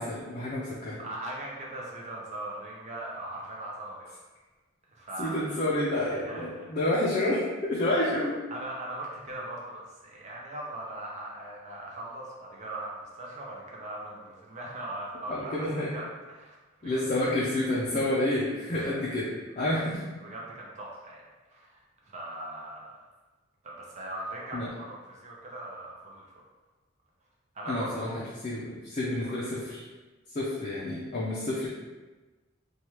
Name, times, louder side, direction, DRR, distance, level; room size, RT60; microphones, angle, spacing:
voice 1, 0.0-1.0 5.2-8.4 15.3-15.9 16.8-19.3 19.6-19.9 24.5-24.7 27.7-29.8 30.3-31.7, left 1 dB, 35° left, -7 dB, 0.4 m, -29 dB
voice 2, 1.0-4.1 5.0-5.4 6.1-6.7 8.5-17.0 18.7-19.0 19.6-19.8 20.2-23.0 23.6-26.3 27.5-28.1 29.2-29.4, right 1 dB, 35° right, -3 dB, 0.4 m, -40 dB
3.1 x 2.3 x 2.9 m, 1.2 s
head